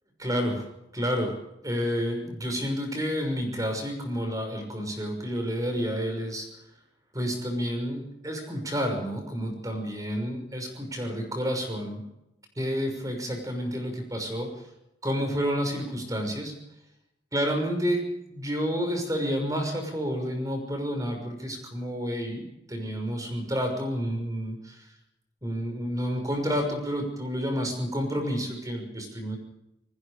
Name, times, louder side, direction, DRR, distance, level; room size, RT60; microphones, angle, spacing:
voice 1, 0.2-0.6 0.9-1.4 1.6-6.5 7.1-12.0 12.6-14.6 15.0-16.5 17.3-18.0 18.3-24.8 25.4-29.4, equal, 20° right, 4 dB, 6.1 m, -30 dB
29.0 x 20.5 x 5.1 m, 0.85 s
head